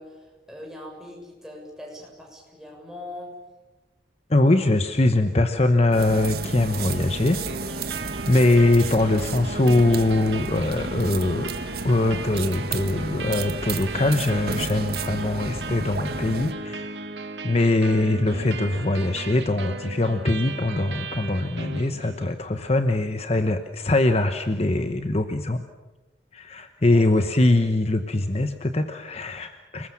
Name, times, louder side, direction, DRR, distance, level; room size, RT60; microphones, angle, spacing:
voice 1, 0.0-3.3 26.8-27.0, left 1 dB, 5° right, -1 dB, 7.0 m, -42 dB
voice 2, 4.3-7.4 8.0-11.5 11.8-16.9 17.4-25.6 26.3-29.9, left 2 dB, 35° left, 8 dB, 1.0 m, -22 dB
sound 1, 5.9-16.5, right 3 dB, 60° right, 1.6 m, -33 dB
sound 2, 7.4-22.4, right 3 dB, 85° right, 1.8 m, -37 dB
29.5 x 20.5 x 7.2 m, 1.1 s
head